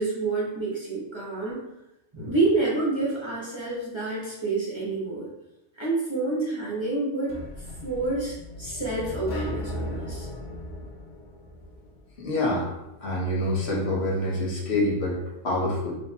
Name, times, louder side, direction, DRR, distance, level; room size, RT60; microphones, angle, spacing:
voice 1, 0.0-1.6 2.1-5.3 5.8-7.4 7.8-10.3, right 3 dB, 25° right, -6 dB, 0.9 m, -28 dB
sound 1, 7.3-12.2, left 1 dB, 90° left, 1.2 m, -37 dB
voice 2, 12.2-12.7 13.0-15.2 15.4-16.0, left 1 dB, 65° left, -2 dB, 1.1 m, -26 dB
4.9 x 2.9 x 2.8 m, 0.90 s
omnidirectional pair, 1.2 m